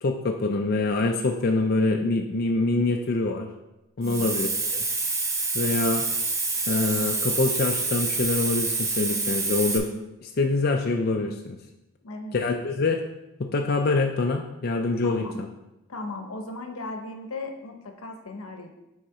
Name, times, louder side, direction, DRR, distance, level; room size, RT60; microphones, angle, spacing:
voice 1, 0.0-3.5 4.0-4.8 5.5-6.0 6.7-9.9 10.2-11.6 12.3-13.0 13.4-15.5, left 3 dB, 45° left, 2 dB, 0.4 m, -25 dB
voice 2, 4.0-4.5 12.0-12.4 15.0-15.3 15.9-18.7, left 2 dB, 80° left, 5 dB, 0.8 m, -37 dB
Hiss, 4.0-9.8, right 3 dB, 15° right, 0.5 m, -27 dB
6.4 x 4.2 x 4.7 m, 0.95 s
head